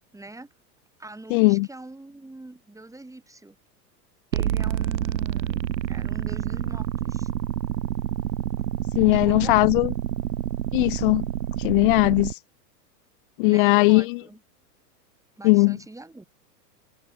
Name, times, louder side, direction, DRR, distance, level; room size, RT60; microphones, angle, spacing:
voice 1, 0.1-0.5 1.0-3.6 4.3-7.3 9.1-9.7 13.5-14.4 15.4-16.2, right 2 dB, 5° right, 7.2 m, -43 dB
voice 2, 1.3-1.7 8.9-9.9 10.7-11.3 11.6-12.4 13.4-14.2 15.4-15.8, left 25 dB, 35° left, 0.4 m, -19 dB
sound 1, 4.3-12.3, right 11 dB, 85° right, 1.1 m, -28 dB
hypercardioid pair, 105°, 49 cm